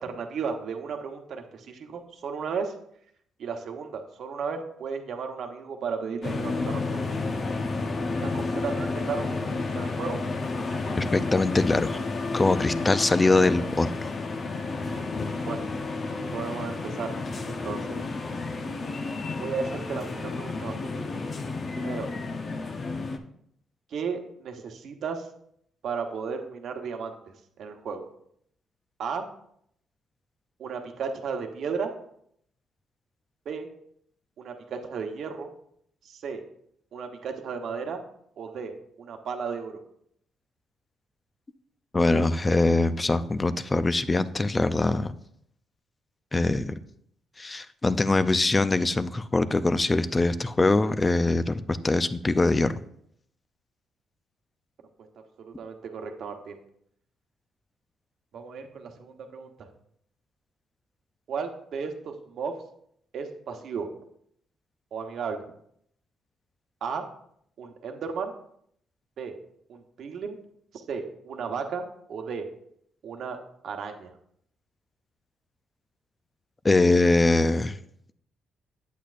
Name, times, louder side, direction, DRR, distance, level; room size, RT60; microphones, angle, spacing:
voice 1, 0.0-2.7 3.4-7.0 8.2-10.2 14.9-15.1 15.5-15.6 16.3-17.1 17.5-18.0 19.4-20.9 21.8-22.1 23.9-25.3 25.8-28.0 29.0-29.2 30.6-31.9 33.4-33.7 34.4-35.5 36.0-36.4 36.9-38.0 38.4-39.8 55.0-55.1 55.4-56.6 58.3-59.7 61.3-62.5 63.1-63.9 64.9-65.4 66.8-67.0 67.6-68.3 69.2-69.3 69.7-70.4 70.7-72.5 73.0-73.4 73.6-74.1, right 5 dB, 65° right, 5 dB, 1.0 m, -34 dB
sound 1, 6.2-23.2, left 3 dB, 40° left, 0.8 m, -31 dB
voice 2, 11.0-12.0 12.3-14.1 41.9-45.1 46.3-46.7 47.4-52.8 76.6-77.8, left 2 dB, 20° left, 13 dB, 0.5 m, -23 dB
8.4 x 8.3 x 2.5 m, 0.70 s
cardioid pair, 90°, 0 cm